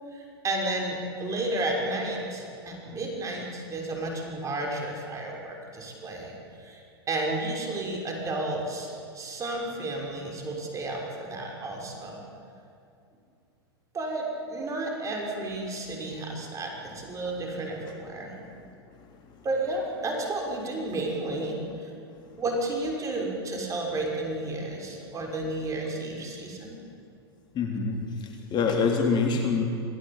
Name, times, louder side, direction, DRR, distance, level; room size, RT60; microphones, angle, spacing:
voice 1, 0.1-6.8 7.1-12.2 13.9-18.4 19.4-21.9 22.4-26.8, right 2 dB, 25° right, 0 dB, 6.2 m, -32 dB
voice 2, 27.5-29.6, left 5 dB, 35° left, 2 dB, 3.5 m, -26 dB
27.0 x 17.5 x 9.0 m, 2.5 s
hypercardioid pair, 105°, 14 cm